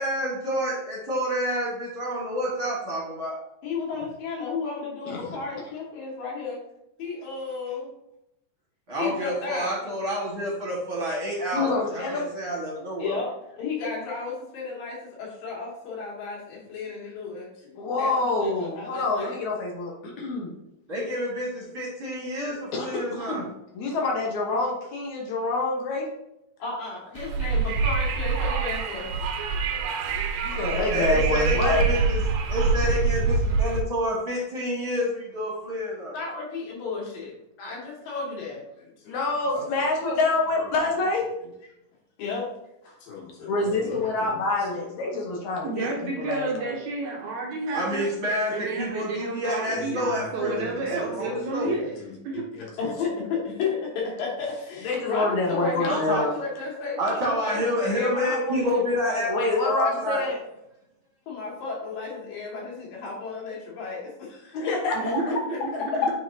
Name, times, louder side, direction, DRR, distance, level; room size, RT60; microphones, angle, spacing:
voice 1, 0.0-3.4 8.9-13.2 20.9-23.4 30.9-36.1 39.5-39.6 47.7-51.7 55.8-56.2 57.0-60.2, equal, 45° right, -4 dB, 1.9 m, -28 dB
voice 2, 3.6-6.6 7.0-7.9 9.0-9.8 13.0-19.4 26.6-29.1 36.1-37.3 37.6-39.2 42.2-42.5 42.8-44.4 44.7-44.9 49.7-59.3 61.3-64.7 65.3-65.8, left 4 dB, 85° left, -3 dB, 3.6 m, -33 dB
voice 3, 5.1-5.4 11.5-12.2 17.8-20.5 22.7-23.5 23.7-26.1 30.4-31.9 39.1-41.3 43.5-45.9 46.2-46.8 54.8-56.3 59.3-60.4 64.5-65.0 66.0-66.1, left 3 dB, 65° left, -1 dB, 2.3 m, -26 dB
Wind, 27.2-33.8, right 5 dB, 90° right, 2.5 m, -25 dB
voice 4, 45.6-48.1 48.5-52.0 52.2-52.4 64.9-66.1, right 3 dB, 70° right, -1 dB, 1.9 m, -31 dB
9.0 x 4.9 x 2.7 m, 0.84 s
omnidirectional pair, 3.9 m